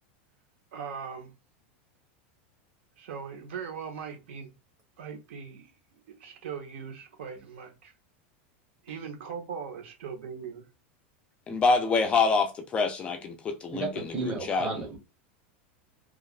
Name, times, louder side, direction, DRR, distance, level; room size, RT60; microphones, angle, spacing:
voice 1, 0.7-1.3 3.0-4.5 5.0-5.7 6.2-7.9 8.8-10.6, right 6 dB, 80° right, 1.0 m, -39 dB
voice 2, 11.5-13.9 14.2-14.7, left 4 dB, 20° left, 0.3 m, -26 dB
voice 3, 13.7-15.0, right 3 dB, 15° right, 1.0 m, -33 dB
3.2 x 2.4 x 2.4 m
supercardioid pair, 165°, 6 cm